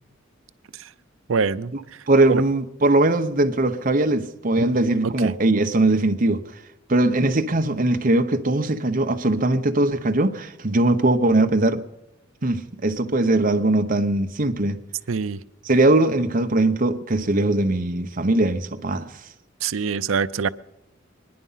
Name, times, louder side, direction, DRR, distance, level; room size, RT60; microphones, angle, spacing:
voice 1, 1.3-1.7 2.3-2.4 4.6-4.7 5.0-5.3 15.1-15.4 19.6-20.5, right 5 dB, 85° right, 0.5 m, -24 dB
voice 2, 2.1-6.5 6.9-11.8 12.4-14.8 15.6-19.2, right 2 dB, 45° right, 0.9 m, -20 dB
23.0 x 10.5 x 5.6 m
head